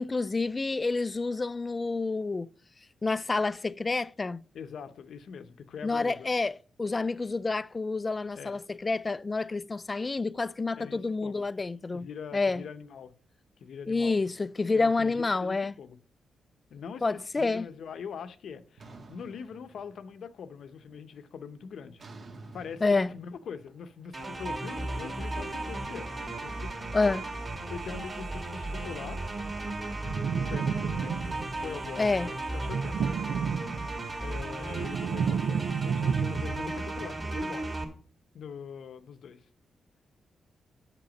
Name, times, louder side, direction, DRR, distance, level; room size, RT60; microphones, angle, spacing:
voice 1, 0.0-2.5 3.0-4.4 5.8-12.1 12.3-12.6 13.9-15.7 17.0-17.7 22.8-23.1 26.9-27.3 32.0-32.3, left 3 dB, 25° left, 0.3 m, -28 dB
voice 2, 4.5-6.3 8.4-8.6 10.8-11.4 11.9-13.1 13.6-14.2 14.7-16.0 16.7-22.0 22.5-26.1 26.4-26.9 27.7-29.2 30.4-31.2 31.6-33.1 34.2-37.7 38.3-39.4, left 6 dB, 70° left, 0.8 m, -42 dB
sound 1, 18.8-20.3 20.7-21.1 22.0-25.0, right 2 dB, 50° right, 1.4 m, -51 dB
sound 2, 24.1-37.8, right 2 dB, 30° right, 2.2 m, -35 dB
sound 3, 30.0-31.6 32.6-34.1 34.5-36.8, right 6 dB, 80° right, 0.4 m, -31 dB
7.7 x 6.9 x 5.1 m
cardioid pair, 120°, 0 cm